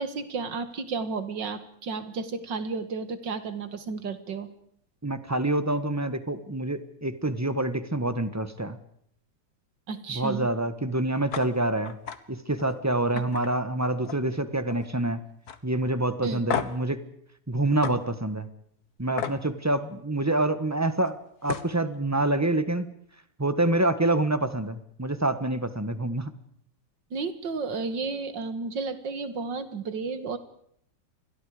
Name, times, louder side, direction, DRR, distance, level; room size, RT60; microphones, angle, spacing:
voice 1, 0.0-4.5 9.9-10.5 13.1-13.2 16.2-16.4 27.1-30.4, right 4 dB, 75° right, 11 dB, 2.5 m, -32 dB
voice 2, 5.0-8.8 10.1-11.9 12.3-15.2 15.6-17.0 17.5-18.5 19.0-22.9 23.4-26.3, right 2 dB, 10° right, 12 dB, 1.3 m, -27 dB
sound 1, 11.3-11.5 11.8-12.2 12.6-12.8 13.2-14.3 14.6-15.0 15.5-15.6 16.5-16.9 17.8-18.0 19.2-19.4 21.1-21.2 21.4-21.7, left 7 dB, 60° left, 1.8 m, -33 dB
29.5 x 22.0 x 5.1 m, 0.69 s
omnidirectional pair, 2.0 m